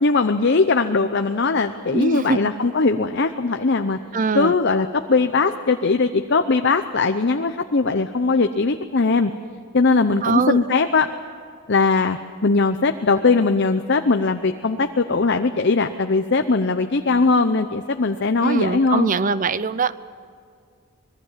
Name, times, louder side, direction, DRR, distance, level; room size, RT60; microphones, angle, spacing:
voice 1, 0.0-4.0 4.3-9.3 9.7-11.1 11.7-19.1, left 3 dB, 50° left, 7 dB, 0.7 m, -20 dB
voice 2, 1.9-2.4 4.1-4.5 10.2-10.6 18.4-19.9, right 4 dB, 35° right, 15 dB, 0.6 m, -22 dB
25.5 x 20.5 x 7.4 m, 2.3 s
head